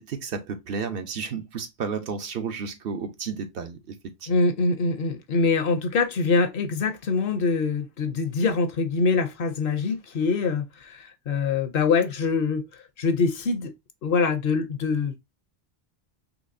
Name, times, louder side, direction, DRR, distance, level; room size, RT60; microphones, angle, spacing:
voice 1, 0.0-4.3, right 5 dB, 65° right, 0.9 m, -32 dB
voice 2, 4.3-12.6 13.0-13.7 14.0-15.1, left 4 dB, 65° left, 0.8 m, -24 dB
4.0 x 2.9 x 2.5 m
omnidirectional pair, 1.1 m